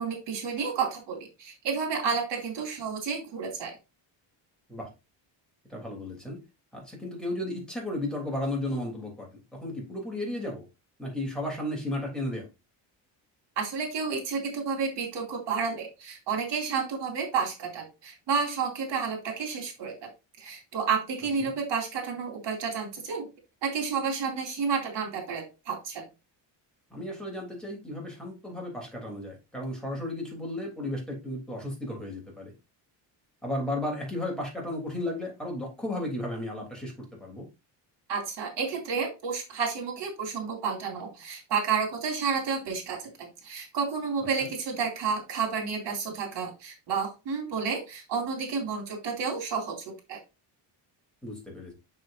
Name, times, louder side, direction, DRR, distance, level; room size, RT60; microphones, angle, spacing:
voice 1, 0.0-3.7 13.6-20.1 20.4-23.3 23.6-26.0 38.1-49.8 50.1-50.2, right 5 dB, 75° right, 2 dB, 2.7 m, -31 dB
voice 2, 5.7-6.4 6.7-10.6 11.0-12.5 21.4-21.5 26.9-32.5 33.4-36.9 37.2-37.4 44.4-44.5 51.2-51.7, left 1 dB, ahead, -2 dB, 3.1 m, -34 dB
6.6 x 6.3 x 2.6 m, 0.27 s
cardioid pair, 120°, 43 cm